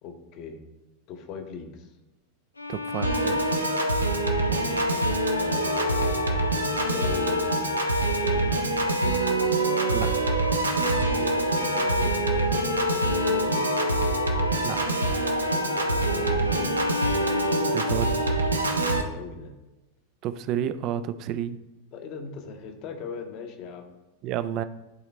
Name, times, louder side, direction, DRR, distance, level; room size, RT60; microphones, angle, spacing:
voice 1, 0.0-0.6 1.1-1.9 4.4-5.1 5.4-8.5 11.1-13.6 15.6-16.8 18.8-19.5 21.9-23.9, left 5 dB, 40° left, 6 dB, 0.9 m, -40 dB
Bowed string instrument, 2.6-18.4, left 4 dB, 80° left, 0.4 m, -34 dB
voice 2, 2.7-3.6 9.9-10.1 14.6-14.8 17.7-18.2 20.2-21.6 24.2-24.6, right 10 dB, 40° right, 13 dB, 0.4 m, -30 dB
Piano / Organ, 3.0-19.0, right 2 dB, 80° right, 0.7 m, -25 dB
11.0 x 3.9 x 3.2 m, 1.0 s
figure-of-eight pair, 90°, 0 cm